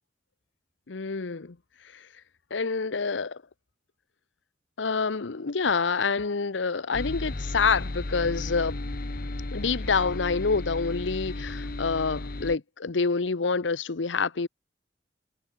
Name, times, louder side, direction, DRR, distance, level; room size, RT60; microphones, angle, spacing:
voice 1, 0.9-1.6 1.9-2.1 2.5-3.4 4.8-8.8 9.5-14.5, left 4 dB, 85° left, 0.9 m, -27 dB
sound 1, 6.9-12.6, left 2 dB, 55° left, 1.2 m, -34 dB
head